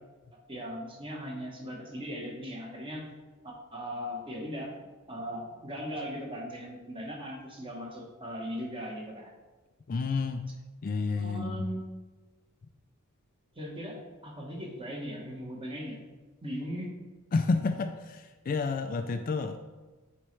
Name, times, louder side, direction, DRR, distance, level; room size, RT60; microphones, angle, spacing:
voice 1, 0.5-3.0 3.4-4.7 5.1-9.3 11.2-11.8 13.5-16.0 16.4-16.9, equal, 25° right, -1 dB, 1.2 m, -38 dB
voice 2, 9.9-10.4 10.8-11.6 17.3-19.6, left 4 dB, 40° left, 7 dB, 0.3 m, -30 dB
8.9 x 4.2 x 3.2 m, 1.3 s
head